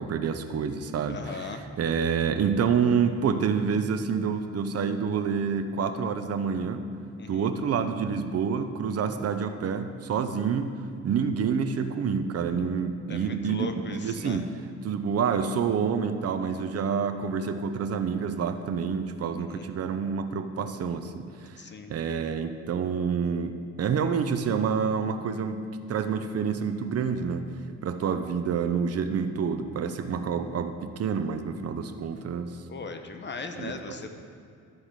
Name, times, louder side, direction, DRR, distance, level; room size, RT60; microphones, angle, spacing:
voice 1, 0.0-6.8 7.3-10.7 11.0-14.5 14.8-21.5 21.9-27.4 27.8-32.5 33.5-33.7, right 6 dB, 55° right, 8 dB, 0.8 m, -28 dB
voice 2, 1.1-1.6 7.2-7.5 13.1-14.4 19.4-19.7 21.6-21.9 32.7-34.2, left 4 dB, 35° left, 6 dB, 1.0 m, -38 dB
12.5 x 4.9 x 7.4 m, 2.4 s
cardioid pair, 90°, 30 cm